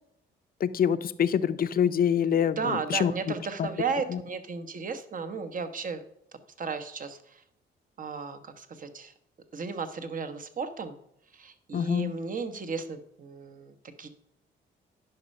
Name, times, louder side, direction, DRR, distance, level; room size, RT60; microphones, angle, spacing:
voice 1, 0.6-3.1 3.6-3.7 11.7-12.1, left 8 dB, 50° left, 12 dB, 0.6 m, -25 dB
voice 2, 2.5-6.0 6.6-7.4 8.0-9.1 9.5-11.0 11.3-14.1, right 5 dB, 45° right, 10 dB, 1.2 m, -34 dB
10.5 x 5.6 x 5.4 m, 0.75 s
cardioid pair, 90°, 20 cm